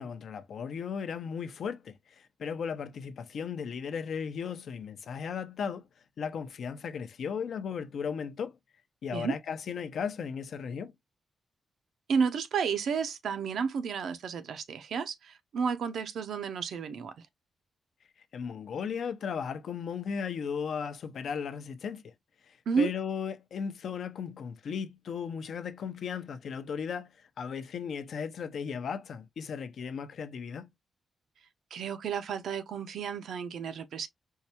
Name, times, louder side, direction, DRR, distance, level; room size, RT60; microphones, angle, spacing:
voice 1, 0.0-5.8 6.2-8.6 9.0-10.9 18.3-22.0 22.5-27.1 27.4-30.7, left 6 dB, 70° left, 0.6 m, -36 dB
voice 2, 12.1-17.3 22.7-22.9 31.7-34.1, right 6 dB, 80° right, 0.6 m, -31 dB
4.5 x 2.2 x 2.7 m
wide cardioid pair, 120°, 0 cm